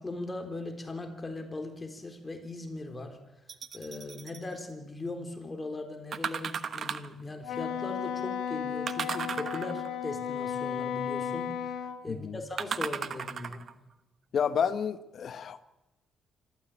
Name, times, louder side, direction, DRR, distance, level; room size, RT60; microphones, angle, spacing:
voice 1, 0.0-3.2 3.7-13.6, left 2 dB, 20° left, 5 dB, 4.0 m, -39 dB
sound 1, 3.5-4.4 6.1-7.2 8.9-10.0 12.6-13.7 14.4-14.5, right 7 dB, 50° right, 1.2 m, -35 dB
Wind instrument woodwind instrument, 7.4-12.0, left 8 dB, 80° left, 1.8 m, -34 dB
voice 2, 12.1-12.4 14.3-15.6, left 7 dB, 55° left, 12 dB, 1.3 m, -30 dB
25.5 x 14.0 x 8.8 m, 0.97 s
cardioid pair, 90°, 0 cm